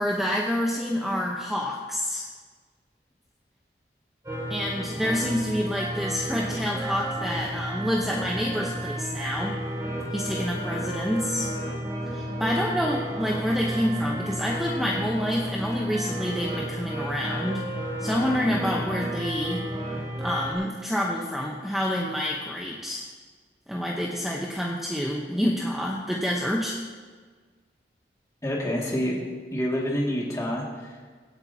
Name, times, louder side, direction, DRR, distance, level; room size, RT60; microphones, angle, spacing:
voice 1, 0.0-2.2 4.5-9.6 10.1-11.5 12.1-17.6 18.0-19.7 20.2-23.0 23.7-26.8, equal, ahead, -3 dB, 0.9 m, -28 dB
sound 1, 4.2-20.5, right 1 dB, 20° right, 2.5 m, -32 dB
voice 2, 28.4-29.2 29.5-31.0, equal, 20° left, -3 dB, 2.1 m, -27 dB
23.5 x 8.9 x 2.8 m, 1.5 s
head